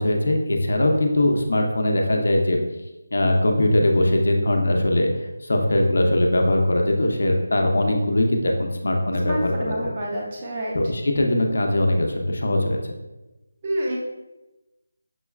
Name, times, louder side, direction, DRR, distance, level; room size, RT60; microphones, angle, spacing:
voice 1, 0.0-2.6 3.1-5.1 5.4-9.9 10.7-12.9, left 1 dB, 60° left, 2 dB, 0.6 m, -21 dB
voice 2, 9.2-10.7 13.6-14.0, right 1 dB, 15° right, -3 dB, 0.5 m, -28 dB
6.0 x 2.2 x 2.3 m, 1.0 s
figure-of-eight pair, 180°, 0 cm